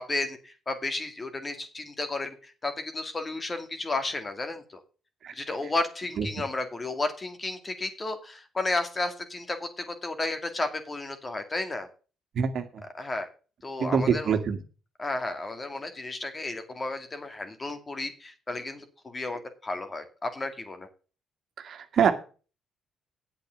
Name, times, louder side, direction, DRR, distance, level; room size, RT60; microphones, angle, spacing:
voice 1, 0.0-4.8 5.3-11.9 12.9-13.3 13.6-14.3 15.0-20.9, left 2 dB, 25° left, 7 dB, 2.2 m, -33 dB
voice 2, 12.3-12.8 13.8-14.6 21.6-22.1, right 7 dB, 60° right, 7 dB, 1.8 m, -25 dB
8.8 x 8.2 x 6.4 m, 0.36 s
cardioid pair, 90°, 0 cm